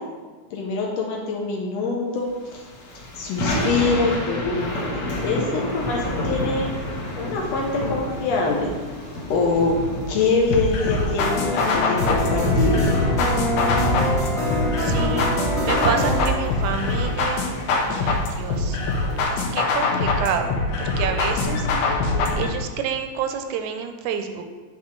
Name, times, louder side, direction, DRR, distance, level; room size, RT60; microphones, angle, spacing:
voice 1, 0.5-2.6 3.2-4.7 5.2-6.7 7.2-8.7 9.3-9.8 10.1-13.0 21.6-21.9, left 3 dB, 70° left, -1 dB, 1.8 m, -24 dB
Thunder / Rain, 2.5-20.0, equal, 55° left, 1.3 m, -29 dB
sound 1, 10.5-22.5, left 3 dB, 85° left, 2.4 m, -24 dB
sound 2, 11.2-16.3, equal, ahead, 0.7 m, -26 dB
voice 2, 14.5-17.5 17.9-18.8 19.2-20.5 20.8-22.1 22.4-24.4, right 7 dB, 80° right, 7 dB, 1.9 m, -29 dB
8.7 x 3.9 x 4.4 m, 1.4 s
omnidirectional pair, 3.5 m